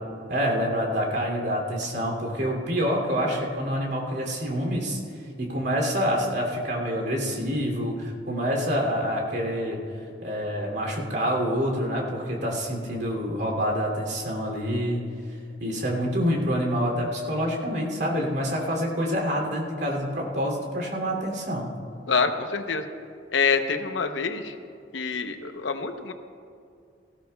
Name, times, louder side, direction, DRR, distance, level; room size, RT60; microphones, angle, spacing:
voice 1, 0.3-5.0 5.4-9.8 10.2-15.0 15.6-21.7, equal, 60° right, -1 dB, 2.8 m, -27 dB
voice 2, 22.1-22.8 23.3-24.5 24.9-26.1, left 5 dB, 85° left, 7 dB, 0.8 m, -26 dB
19.5 x 15.5 x 2.3 m, 2.4 s
head